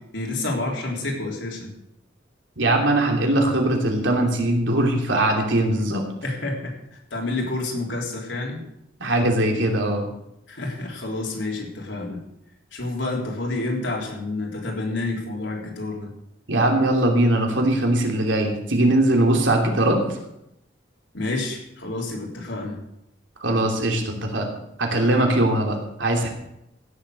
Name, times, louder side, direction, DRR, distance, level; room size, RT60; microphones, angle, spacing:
voice 1, 0.1-1.7 6.2-8.6 10.5-12.2 12.7-16.1 21.1-22.8, left 2 dB, 80° left, -1 dB, 3.7 m, -29 dB
voice 2, 2.6-6.0 9.0-10.1 16.5-20.0 23.4-24.5 24.8-26.3, right 1 dB, 85° right, 2 dB, 2.9 m, -21 dB
16.0 x 7.2 x 6.5 m, 0.83 s
head